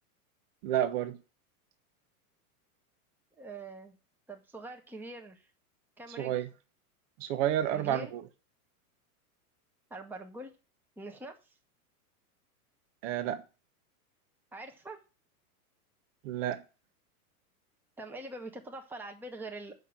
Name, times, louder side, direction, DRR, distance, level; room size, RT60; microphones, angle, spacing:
voice 1, 0.6-1.2 6.2-6.5 7.2-8.2 13.0-13.4 16.2-16.6, right 11 dB, 50° right, 1.3 m, -30 dB
voice 2, 3.4-4.0 4.3-5.5 6.0-6.3 7.7-8.1 9.9-10.5 11.0-11.4 14.5-15.0 18.0-19.8, right 2 dB, 5° right, 1.2 m, -43 dB
7.0 x 5.8 x 7.4 m
hypercardioid pair, 120°, 46 cm